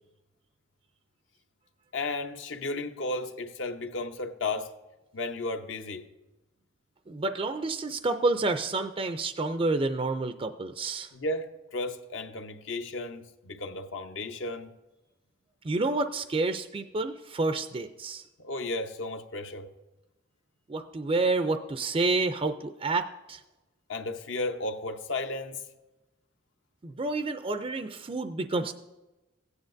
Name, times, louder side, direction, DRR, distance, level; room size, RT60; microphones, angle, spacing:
voice 1, 1.9-4.7 5.1-6.0 11.1-14.7 18.4-19.7 23.9-25.6, left 2 dB, 65° left, 0.8 m, -34 dB
voice 2, 7.1-11.1 15.6-18.2 20.7-23.4 26.8-28.7, right 3 dB, 30° right, 0.4 m, -29 dB
16.0 x 9.7 x 2.6 m
head